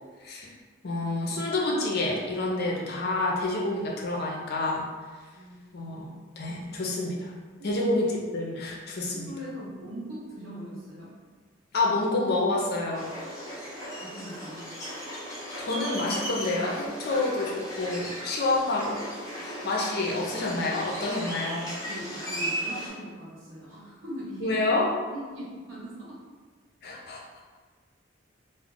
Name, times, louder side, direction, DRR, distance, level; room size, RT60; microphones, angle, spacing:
voice 1, 0.8-4.9 5.7-7.3 7.6-9.3 11.7-13.1 15.3-19.0 19.4-21.7 24.4-24.9 26.8-27.2, left 2 dB, 55° left, -2 dB, 0.5 m, -28 dB
voice 2, 9.0-11.1 14.0-14.7 17.1-17.2 19.3-19.4 21.8-24.6 25.1-26.2 26.9-27.0, equal, 80° right, -7 dB, 1.0 m, -41 dB
sound 1, 12.9-22.9, equal, 15° left, 0.7 m, -36 dB
2.3 x 2.0 x 3.6 m, 1.5 s
head